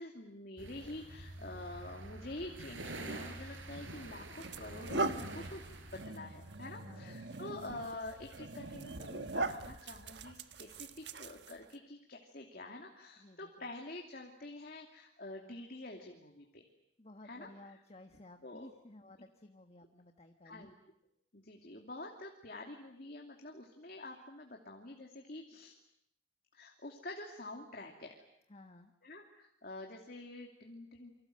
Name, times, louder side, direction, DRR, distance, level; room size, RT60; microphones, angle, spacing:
voice 1, 0.0-5.6 5.9-16.7 17.2-17.5 18.4-18.6 20.4-20.7 21.3-25.8 26.5-28.1 29.0-31.1, left 2 dB, 50° left, 1 dB, 2.8 m, -47 dB
sound 1, 0.6-6.1, right 2 dB, 75° right, 4.8 m, -47 dB
sound 2, 3.6-3.8 4.3-11.7, right 3 dB, 60° right, 1.4 m, -41 dB
voice 2, 6.8-7.2 13.2-13.5 17.0-20.7 28.5-28.9, left 1 dB, 30° left, 5 dB, 1.5 m, -55 dB
29.0 x 25.5 x 7.8 m, 0.77 s
head